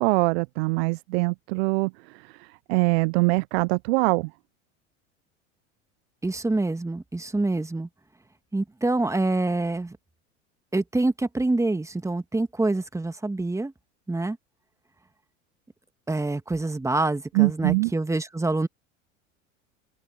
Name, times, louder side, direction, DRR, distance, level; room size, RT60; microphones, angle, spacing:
voice 1, 0.0-4.3 17.3-17.9, right 27 dB, 55° right, 0.5 m, -23 dB
voice 2, 6.2-7.9 8.5-10.0 10.7-13.7 14.1-14.4 16.1-18.7, right 2 dB, 10° right, 1.9 m, -26 dB
open air
hypercardioid pair, 80°, 37 cm